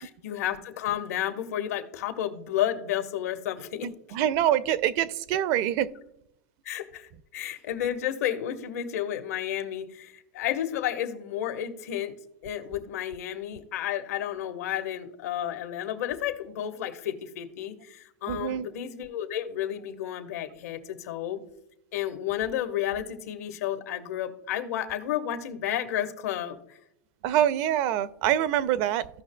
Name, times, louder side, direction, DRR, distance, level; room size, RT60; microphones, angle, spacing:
voice 1, 0.0-3.9 6.6-12.2 12.4-21.4 21.9-26.8, left 11 dB, 80° left, 1.2 m, -32 dB
voice 2, 3.8-5.9 18.3-18.7 27.2-29.1, right 11 dB, 45° right, 0.4 m, -25 dB
15.5 x 5.8 x 2.2 m
supercardioid pair, 155°, 8 cm